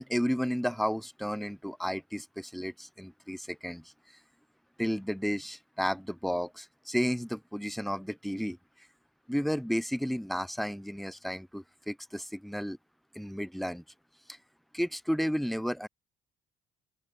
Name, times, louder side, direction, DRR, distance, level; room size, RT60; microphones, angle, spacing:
voice 1, 0.0-3.9 4.8-8.9 9.3-12.8 13.1-13.8 14.3-14.4 14.7-15.9, equal, ahead, 0.9 m, -32 dB
open air
supercardioid pair, 80°, 18 cm